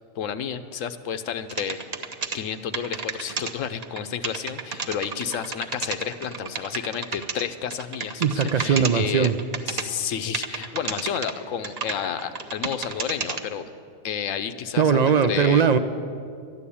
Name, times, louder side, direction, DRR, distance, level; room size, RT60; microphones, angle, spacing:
voice 1, 0.1-1.8 2.3-9.3 9.7-13.7 14.0-15.6, left 8 dB, 80° left, 11 dB, 1.1 m, -31 dB
sound 1, 1.5-2.4 2.7-3.5 3.8-4.0 4.2-7.4 7.7-8.9 9.2-9.8 10.3-11.3 11.6-13.4, right 5 dB, 40° right, 0.7 m, -31 dB
voice 2, 8.2-9.3 14.8-15.8, right 7 dB, 70° right, 11 dB, 0.4 m, -20 dB
12.0 x 10.5 x 8.5 m, 2.4 s
omnidirectional pair, 1.3 m